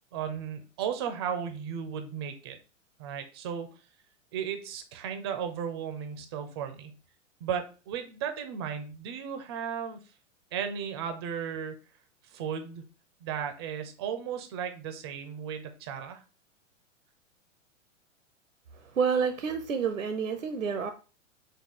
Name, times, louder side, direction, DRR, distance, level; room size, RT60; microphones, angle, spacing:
voice 1, 0.1-2.6 3.0-3.7 4.3-6.9 7.4-10.0 10.5-11.8 12.3-12.9 13.2-16.2, right 8 dB, 20° right, 7 dB, 0.4 m, -35 dB
voice 2, 18.7-20.9, right 6 dB, 85° right, 8 dB, 0.5 m, -29 dB
4.5 x 2.3 x 3.7 m, 0.35 s
figure-of-eight pair, 100°, 38 cm